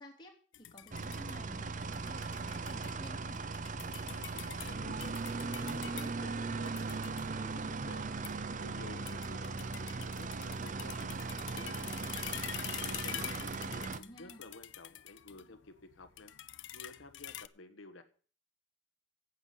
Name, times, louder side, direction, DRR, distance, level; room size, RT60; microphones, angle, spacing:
voice 1, 0.0-3.5 13.5-14.5, equal, 25° left, 0 dB, 3.0 m, -53 dB
sound 1, 0.5-17.5, left 13 dB, 65° left, 0.6 m, -47 dB
sound 2, 0.9-14.0, right 4 dB, 40° right, 0.7 m, -38 dB
voice 2, 4.0-5.2 5.6-8.1 8.6-12.0 12.9-16.3 16.7-18.0, left 2 dB, 85° left, 8 dB, 1.3 m, -52 dB
9.4 x 8.4 x 8.2 m, 0.42 s
head